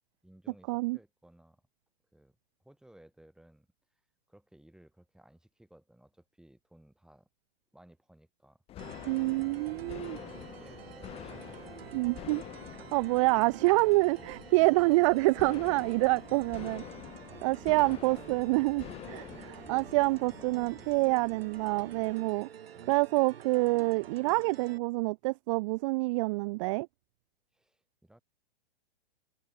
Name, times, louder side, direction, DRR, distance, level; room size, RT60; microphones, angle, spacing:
voice 1, 0.2-1.6 2.1-4.0 4.3-7.3 7.7-9.4 10.3-11.6 13.6-13.7 17.3-18.5 22.7-23.0 27.5-28.2, right 1 dB, ahead, 6.7 m, -59 dB
sound 1, 8.7-22.1, left 13 dB, 20° left, 0.8 m, -47 dB
sound 2, 8.8-24.8, right 9 dB, 65° right, 2.7 m, -49 dB
voice 2, 9.1-10.2 11.9-12.4 12.9-16.8 17.4-22.5 22.9-26.9, right 23 dB, 30° right, 0.5 m, -27 dB
figure-of-eight pair, 115°, 32 cm